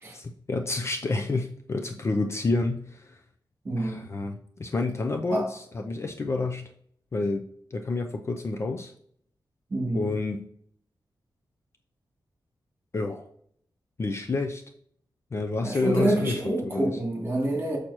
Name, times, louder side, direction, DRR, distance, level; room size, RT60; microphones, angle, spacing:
voice 1, 0.1-3.2 3.8-6.6 7.1-7.4 7.7-8.9 9.9-10.4 12.9-13.3 14.0-14.6 15.3-16.9, left 3 dB, 35° left, 0.4 m, -29 dB
voice 2, 3.6-4.0 5.3-5.5 9.7-10.1 15.6-17.8, right 1 dB, 30° right, 2.5 m, -27 dB
6.4 x 6.1 x 2.9 m
wide cardioid pair, 170°, 8 cm